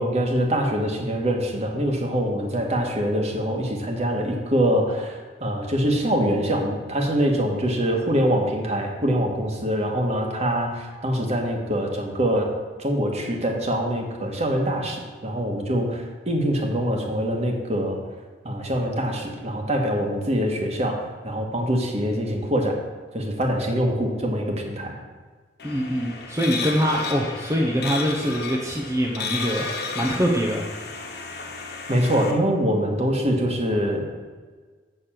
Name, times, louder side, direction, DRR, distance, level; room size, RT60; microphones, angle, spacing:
voice 1, 0.0-12.5 12.8-18.0 18.4-22.8 23.1-24.9 31.9-34.0, equal, 40° right, 2 dB, 1.6 m, -24 dB
sound 1, 25.6-32.3, left 4 dB, 65° left, 1.2 m, -33 dB
voice 2, 25.6-29.7 29.9-30.7, equal, 20° right, -2 dB, 0.9 m, -24 dB
6.8 x 6.3 x 7.5 m, 1.4 s
head